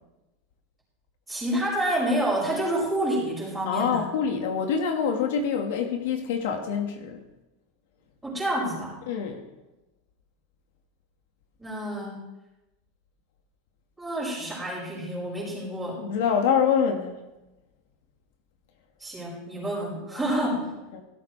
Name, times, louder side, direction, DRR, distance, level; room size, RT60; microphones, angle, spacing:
voice 1, 1.3-4.1 8.2-9.0 11.6-12.2 14.0-16.0 19.0-20.7, right 1 dB, 5° right, -5 dB, 5.6 m, -28 dB
voice 2, 3.6-7.2 9.1-9.4 16.0-17.2 20.9-21.0, left 7 dB, 65° left, 3 dB, 1.7 m, -25 dB
16.0 x 13.5 x 3.3 m, 1.0 s
supercardioid pair, 170°, 0 cm